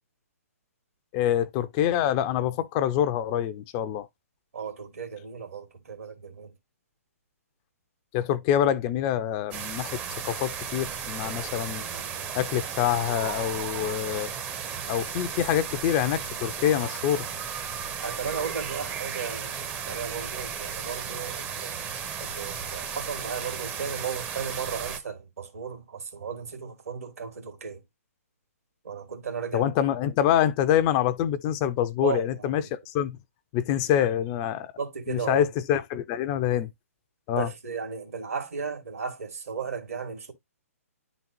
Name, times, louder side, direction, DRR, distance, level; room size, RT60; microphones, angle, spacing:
voice 1, 1.1-4.1 8.1-10.0 10.2-11.8 12.3-14.3 14.9-17.3 29.5-33.2 33.5-34.7 35.1-36.7 37.3-37.5, left 10 dB, 25° left, 0.5 m, -26 dB
voice 2, 4.5-6.5 18.0-21.7 22.2-27.8 28.8-29.7 32.0-32.7 34.0-34.1 34.8-35.5 37.4-40.3, right 6 dB, 70° right, 2.2 m, -35 dB
sound 1, 9.5-25.0, right 7 dB, 20° right, 0.7 m, -35 dB
10.5 x 4.0 x 2.8 m
figure-of-eight pair, 125°, 8 cm